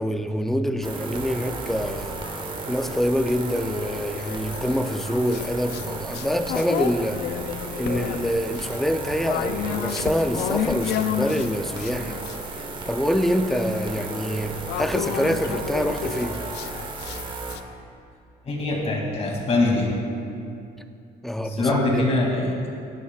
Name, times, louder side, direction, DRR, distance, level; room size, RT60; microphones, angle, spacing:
voice 1, 0.0-2.2 2.7-7.2 7.8-12.2 12.6-16.4 21.2-22.0, equal, ahead, 8 dB, 0.5 m, -26 dB
sound 1, 0.8-17.6, right 3 dB, 30° right, 1.3 m, -34 dB
sound 2, 1.6-3.0 3.6-12.5 12.9-17.6, left 10 dB, 80° left, 0.5 m, -32 dB
voice 2, 18.5-19.9 21.4-22.7, left 2 dB, 35° left, -1 dB, 2.5 m, -23 dB
15.5 x 11.5 x 2.4 m, 2.6 s
cardioid pair, 110°, 17 cm